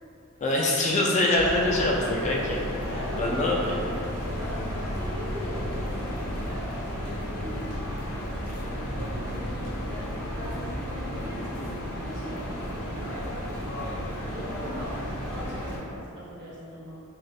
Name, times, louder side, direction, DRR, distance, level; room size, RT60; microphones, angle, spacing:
voice 1, 0.4-2.6 3.2-3.8, left 1 dB, 35° left, -3 dB, 0.3 m, -24 dB
sound 1, 1.4-15.8, equal, 80° left, 0.6 m, -33 dB
voice 2, 2.7-3.9 4.3-6.7 7.0-7.6 8.7-12.8 14.3-14.9 15.2-17.0, equal, 55° right, -7 dB, 0.8 m, -40 dB
3.1 x 2.4 x 2.6 m, 2.6 s
head